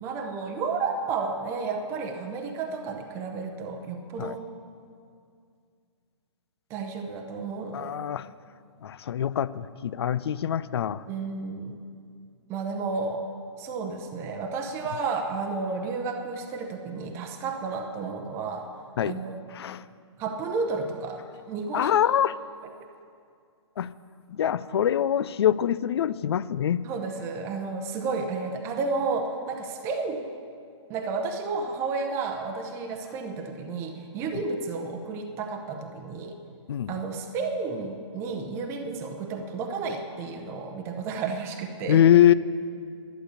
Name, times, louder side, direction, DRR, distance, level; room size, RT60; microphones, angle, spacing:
voice 1, 0.0-4.4 6.7-7.9 11.1-11.8 12.5-13.2 13.6-18.7 19.0-19.4 20.2-21.2 21.5-22.0 22.6-22.9 26.8-30.3 30.9-36.4 36.9-42.0, right 4 dB, 15° right, 4 dB, 0.8 m, -32 dB
voice 2, 7.7-8.3 8.8-11.0 19.0-19.2 19.5-19.8 21.7-22.3 23.8-23.9 24.3-26.8 36.7-36.9 41.9-42.3, left 10 dB, 55° left, 17 dB, 0.4 m, -23 dB
11.5 x 8.4 x 8.1 m, 2.3 s
hypercardioid pair, 160°, 16 cm